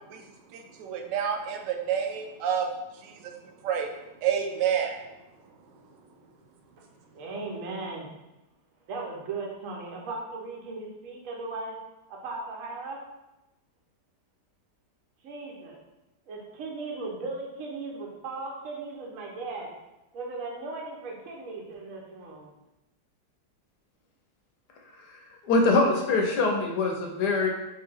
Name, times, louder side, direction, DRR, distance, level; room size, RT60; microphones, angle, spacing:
voice 1, 0.1-2.7 3.0-3.9 4.2-5.0, right 8 dB, 85° right, 3 dB, 1.2 m, -29 dB
voice 2, 7.1-8.1 8.9-11.8 12.1-13.0 15.2-15.8 16.3-19.7 20.1-22.5, right 3 dB, 60° right, 0 dB, 1.1 m, -37 dB
voice 3, 25.4-27.5, left 3 dB, 75° left, 2 dB, 1.1 m, -23 dB
4.3 x 2.8 x 3.3 m, 0.97 s
omnidirectional pair, 1.8 m